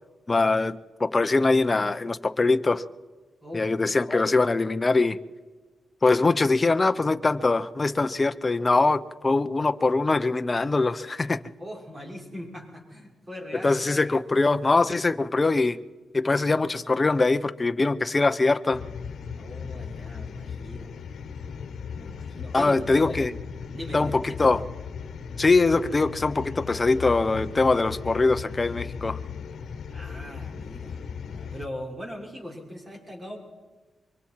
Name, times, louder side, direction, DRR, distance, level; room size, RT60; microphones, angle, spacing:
voice 1, 0.3-2.8 3.5-5.2 6.0-11.4 13.6-15.8 16.1-18.8 22.5-23.3 23.9-24.7 25.4-29.2, left 3 dB, 30° left, 10 dB, 0.8 m, -22 dB
voice 2, 11.6-13.8 19.4-20.9 21.9-23.2 23.7-24.1 29.9-33.4, equal, 30° right, -2 dB, 6.3 m, -40 dB
sound 1, 18.7-31.7, left 6 dB, 75° left, 1.2 m, -37 dB
24.0 x 23.5 x 4.7 m, 1.3 s
cardioid pair, 85°, 0 cm